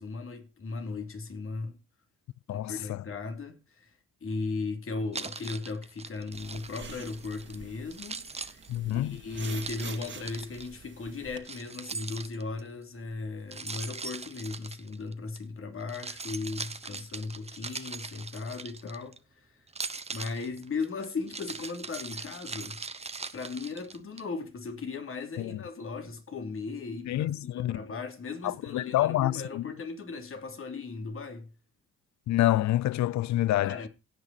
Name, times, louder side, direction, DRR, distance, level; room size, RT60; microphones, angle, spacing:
voice 1, 0.0-1.8 2.5-3.9 4.2-19.5 20.1-22.8 23.3-31.5 33.6-33.9, left 4 dB, 45° left, 3.0 m, -37 dB
voice 2, 2.5-3.0 8.7-9.2 25.4-25.6 27.1-27.8 28.4-29.7 32.3-33.8, left 14 dB, 65° left, 0.6 m, -27 dB
Keys jangling, 5.1-7.6 7.9-10.7 11.4-12.7 13.5-15.4 15.8-19.2 19.7-24.2, right 4 dB, 20° right, 0.9 m, -40 dB
sound 1, 6.3-11.4, right 5 dB, 40° right, 2.0 m, -47 dB
17.0 x 6.2 x 4.2 m
cardioid pair, 90°, 30 cm